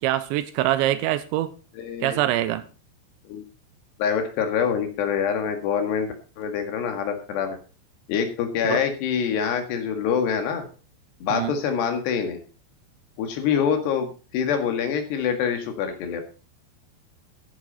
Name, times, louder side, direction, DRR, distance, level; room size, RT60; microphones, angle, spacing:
voice 1, 0.0-1.5 2.0-2.7 8.6-8.8 11.3-11.6, right 13 dB, 80° right, 3.0 m, -24 dB
voice 2, 1.8-2.2 3.3-3.4 4.0-7.6 8.1-10.7 11.2-12.4 13.2-16.2, left 7 dB, 65° left, 3.7 m, -25 dB
14.0 x 11.0 x 4.1 m
omnidirectional pair, 5.6 m